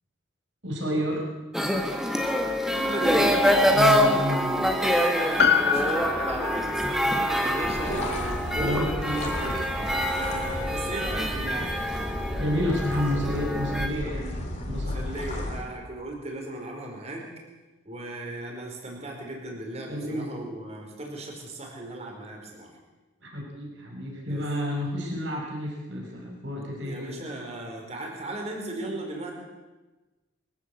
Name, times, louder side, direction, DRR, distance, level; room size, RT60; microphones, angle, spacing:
voice 1, 0.6-1.2 3.7-4.8 8.6-9.9 12.4-15.0 19.9-20.4 23.2-27.1, equal, 65° right, -1 dB, 5.6 m, -30 dB
sound 1, 1.5-13.9, equal, ahead, 1.7 m, -25 dB
voice 2, 2.7-3.4 4.8-9.0 10.0-11.7 14.7-17.3 17.8-22.7 24.2-24.5 26.8-29.3, right 1 dB, 30° right, 1 dB, 4.7 m, -36 dB
Piano, 5.4-10.0 10.2-10.3, left 6 dB, 55° left, 1.6 m, -28 dB
sound 2, 7.6-15.6, left 1 dB, 35° left, 3.7 m, -34 dB
24.0 x 15.0 x 8.4 m, 1.2 s
head